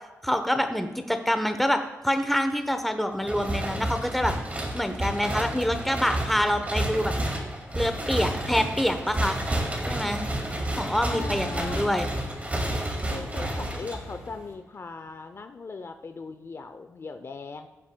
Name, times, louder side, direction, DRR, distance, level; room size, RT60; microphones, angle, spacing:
voice 1, 0.2-7.1 7.8-9.4 9.9-10.3 10.8-12.1, equal, ahead, 7 dB, 0.9 m, -26 dB
sound 1, 3.2-14.4, right 1 dB, 25° right, 2.2 m, -30 dB
Engine / Mechanisms, 7.7-14.5, left 3 dB, 75° left, 2.0 m, -50 dB
voice 2, 11.1-12.0 13.1-17.7, left 4 dB, 45° left, 9 dB, 0.6 m, -39 dB
15.5 x 7.2 x 2.3 m, 1.1 s
cardioid pair, 65°, 6 cm